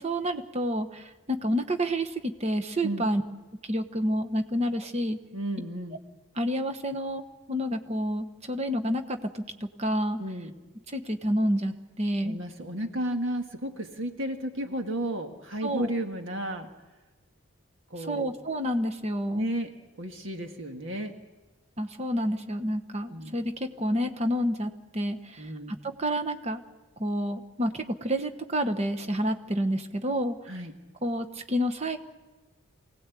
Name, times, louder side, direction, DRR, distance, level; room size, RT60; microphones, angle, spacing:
voice 1, 0.0-3.2 3.6-5.2 6.3-7.2 7.5-10.2 10.9-12.4 15.6-15.9 18.0-19.5 21.8-25.5 25.8-26.6 27.0-30.4 31.0-32.0, equal, 30° right, 6 dB, 1.1 m, -29 dB
voice 2, 5.3-6.0 10.2-10.5 12.2-16.7 17.9-18.3 19.4-19.7 20.0-21.1 23.1-23.3 25.4-25.7 30.5-30.7, right 1 dB, 60° right, 4 dB, 1.7 m, -33 dB
24.0 x 17.5 x 8.4 m, 1.2 s
head